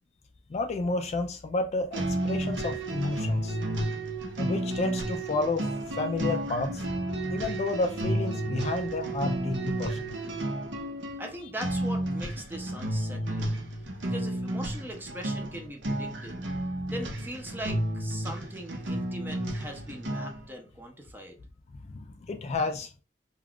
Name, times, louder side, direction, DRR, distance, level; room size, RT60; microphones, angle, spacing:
voice 1, 0.5-3.6 4.4-5.7 6.0-6.9 7.3-10.2 21.9-22.9, left 3 dB, 35° left, 0.3 m, -31 dB
sound 1, 1.9-20.5, right 1 dB, 90° right, 0.7 m, -32 dB
voice 2, 11.2-13.6 14.0-16.4 16.9-21.4, right 1 dB, 10° right, 0.6 m, -40 dB
2.3 x 2.3 x 3.5 m
head